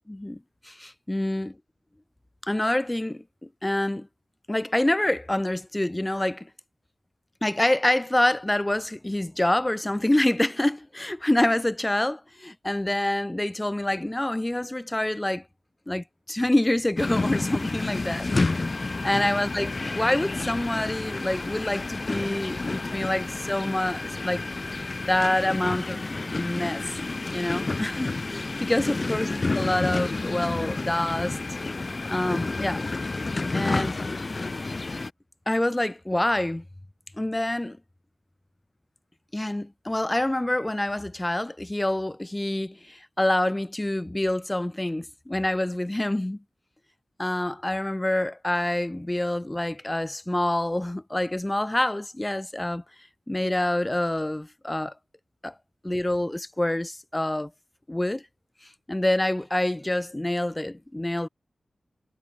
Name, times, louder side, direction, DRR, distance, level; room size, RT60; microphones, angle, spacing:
voice 1, 0.1-0.4 0.6-1.5 2.4-4.1 4.5-6.5 7.4-15.4 15.9-18.5 19.0-24.4 25.0-26.0 26.3-26.8 27.3-31.4 32.1-32.8 33.5-34.0 35.5-36.6 37.2-37.8 39.3-46.4 47.2-52.8 53.3-54.9 55.4-55.5 55.8-57.5 57.9-58.2 58.9-61.3, left 1 dB, 15° left, 1.1 m, -26 dB
sound 1, 17.0-35.1, left 3 dB, 35° left, 0.7 m, -30 dB
wide cardioid pair, 125°, 0 cm